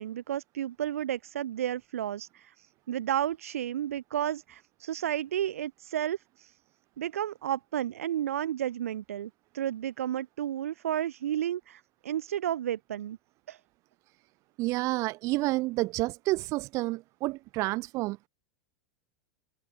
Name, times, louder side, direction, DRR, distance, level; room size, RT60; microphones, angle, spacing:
voice 1, 0.0-2.5 2.9-6.5 7.0-13.2 13.5-13.6, right 11 dB, 85° right, 0.7 m, -32 dB
voice 2, 14.6-18.3, right 21 dB, 45° right, 0.5 m, -29 dB
hypercardioid pair, 115°, 7 cm